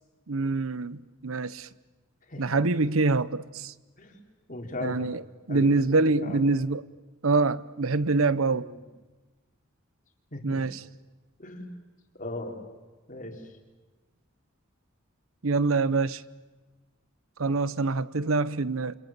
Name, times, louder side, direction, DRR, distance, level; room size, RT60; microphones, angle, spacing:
voice 1, 0.3-1.7 2.4-3.7 4.8-5.2 5.5-6.8 7.2-8.7 10.4-10.8 15.4-16.2 17.4-19.0, right 3 dB, 85° right, 0.9 m, -25 dB
voice 2, 2.3-2.6 4.0-4.2 4.5-5.1 5.5-6.4 8.5-8.8 10.3-10.6 11.4-11.7 12.2-12.6 13.1-13.6, left 1 dB, 40° left, 4.1 m, -38 dB
29.0 x 27.0 x 7.4 m
head